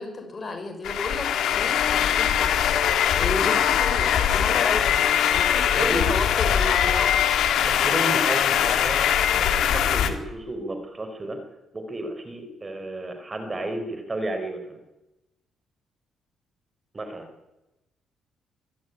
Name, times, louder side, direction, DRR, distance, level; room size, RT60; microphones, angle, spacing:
voice 1, 0.0-2.6 3.2-7.1, left 3 dB, 35° left, 5 dB, 6.0 m, -32 dB
sound 1, 0.8-10.1, left 9 dB, 75° left, 2.4 m, -22 dB
voice 2, 5.7-6.0 7.6-11.4 11.7-14.8 16.9-17.3, right 1 dB, 25° right, 7 dB, 4.5 m, -32 dB
23.5 x 13.5 x 9.9 m, 0.95 s
cardioid pair, 90°, 0 cm